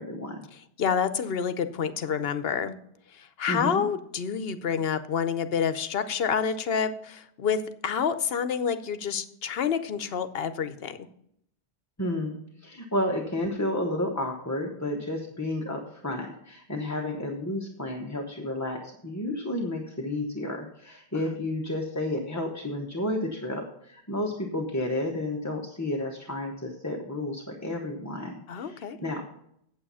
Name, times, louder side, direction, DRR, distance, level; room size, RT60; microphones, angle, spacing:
voice 1, 0.0-0.4 3.5-3.9 12.0-29.2, left 1 dB, 15° left, 0 dB, 0.9 m, -31 dB
voice 2, 0.5-2.8 3.1-11.1 21.3-21.4 28.5-29.0, left 7 dB, 65° left, 11 dB, 1.0 m, -28 dB
8.8 x 8.1 x 5.5 m, 0.71 s
omnidirectional pair, 1.1 m